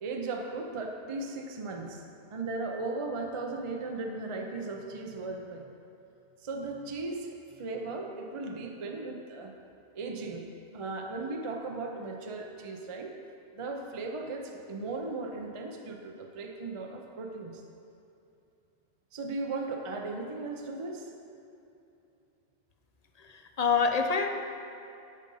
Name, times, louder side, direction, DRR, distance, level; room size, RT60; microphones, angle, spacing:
voice 1, 0.0-2.0 2.3-5.6 6.4-9.5 9.9-13.1 13.5-17.6 19.1-21.1, right 3 dB, 35° right, 3 dB, 0.7 m, -37 dB
voice 2, 23.2-24.3, left 5 dB, 40° left, 5 dB, 0.7 m, -26 dB
12.5 x 5.3 x 5.4 m, 2.7 s
omnidirectional pair, 1.2 m